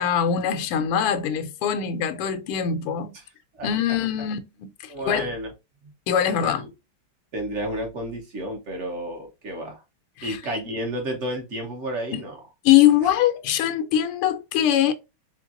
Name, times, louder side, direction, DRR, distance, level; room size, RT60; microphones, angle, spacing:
voice 1, 0.0-3.2 3.6-5.3 6.1-6.6 10.2-10.4 12.1-12.2 12.6-14.9, left 10 dB, 85° left, 1.6 m, -22 dB
voice 2, 4.9-5.5 6.4-6.6 7.3-9.8 10.2-12.3, right 1 dB, 45° right, 1.0 m, -31 dB
4.5 x 3.2 x 2.5 m
omnidirectional pair, 2.4 m